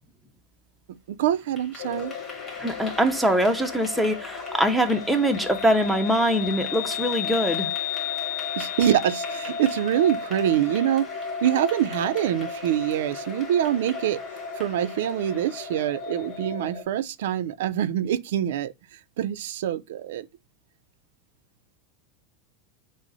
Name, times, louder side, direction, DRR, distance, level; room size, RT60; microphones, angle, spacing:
voice 1, 1.2-2.1 8.6-11.1 11.4-14.2 14.5-20.3, right 11 dB, 80° right, 0.4 m, -25 dB
Clapping / Applause, 1.3-16.6, left 3 dB, 20° left, 1.6 m, -43 dB
sound 1, 1.8-16.8, left 6 dB, 65° left, 0.7 m, -34 dB
voice 2, 2.6-7.7, equal, ahead, 0.6 m, -23 dB
6.2 x 2.1 x 3.9 m
supercardioid pair, 145°, 0 cm